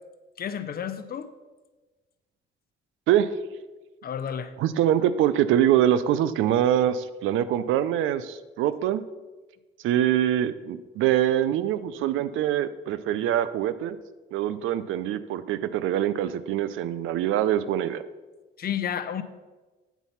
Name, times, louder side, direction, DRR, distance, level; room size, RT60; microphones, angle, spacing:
voice 1, 0.4-1.3 4.0-4.5 18.6-19.2, left 8 dB, 50° left, 11 dB, 0.6 m, -31 dB
voice 2, 4.6-9.0 9.8-14.0 14.3-18.0, right 11 dB, 85° right, 14 dB, 0.4 m, -24 dB
8.2 x 4.1 x 5.6 m, 1.2 s
cardioid pair, 90°, 20 cm